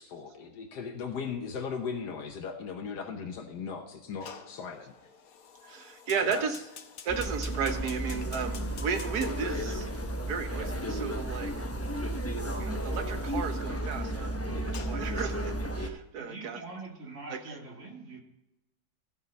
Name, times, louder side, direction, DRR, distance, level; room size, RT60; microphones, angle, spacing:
voice 1, 0.0-4.9 6.2-6.4, left 6 dB, 85° left, 3 dB, 1.6 m, -37 dB
Fire, 4.2-15.9, left 7 dB, 65° left, 1.3 m, -50 dB
voice 2, 5.6-6.6 7.0-9.9 10.2-11.5 12.6-16.6 17.3-17.6, right 6 dB, 75° right, 8 dB, 1.6 m, -34 dB
sound 1, 7.1-15.9, right 1 dB, 15° left, 0.6 m, -33 dB
voice 3, 16.1-18.2, right 3 dB, 50° right, 0 dB, 2.4 m, -44 dB
15.0 x 5.6 x 5.3 m, 0.94 s
omnidirectional pair, 1.7 m